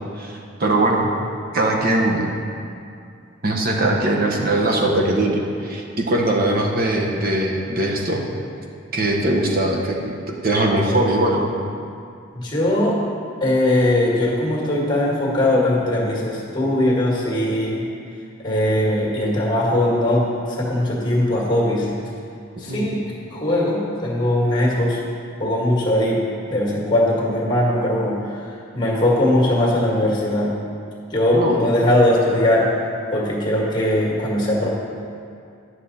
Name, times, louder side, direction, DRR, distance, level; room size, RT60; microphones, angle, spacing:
voice 1, 0.2-1.1 1.5-2.3 3.4-8.2 8.9-10.1 10.4-11.5 22.5-22.9 31.3-31.6, right 1 dB, 45° right, 0 dB, 1.0 m, -20 dB
voice 2, 12.3-13.0 13.4-17.9 18.4-21.9 22.6-23.0 23.3-25.0 25.4-28.4 28.7-30.5 31.1-32.7 33.1-34.7, left 1 dB, 25° left, -3 dB, 1.8 m, -20 dB
10.5 x 6.3 x 4.1 m, 2.4 s
head